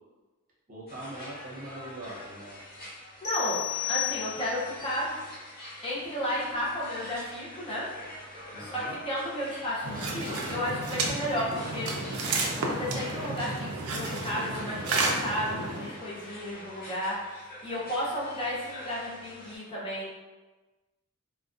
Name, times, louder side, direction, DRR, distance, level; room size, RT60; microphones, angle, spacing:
voice 1, 0.7-2.6 8.5-9.0, right 1 dB, 40° right, -6 dB, 0.7 m, -42 dB
sound 1, 0.9-19.6, left 1 dB, 45° left, 0.9 m, -46 dB
sound 2, 3.2-4.8, left 13 dB, 85° left, 0.8 m, -32 dB
voice 2, 3.2-3.6 3.9-5.1 5.8-7.9 8.6-11.9 12.6-20.1, equal, 25° left, -6 dB, 0.5 m, -33 dB
sound 3, 9.8-16.0, right 2 dB, 80° right, 0.4 m, -32 dB
2.4 x 2.2 x 2.3 m, 1.2 s
head